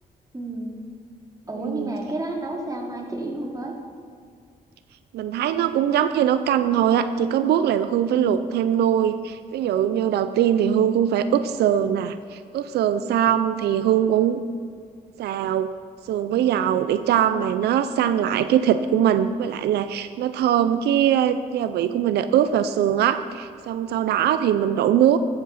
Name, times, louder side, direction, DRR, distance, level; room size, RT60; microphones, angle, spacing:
voice 1, 0.3-0.8 1.5-3.7, right 2 dB, 20° right, 0 dB, 2.5 m, -31 dB
voice 2, 1.6-2.0 5.1-14.4 15.2-15.7 16.1-25.2, right 10 dB, 90° right, 11 dB, 0.5 m, -21 dB
13.5 x 7.8 x 5.8 m, 2.1 s
cardioid pair, 80°, 17 cm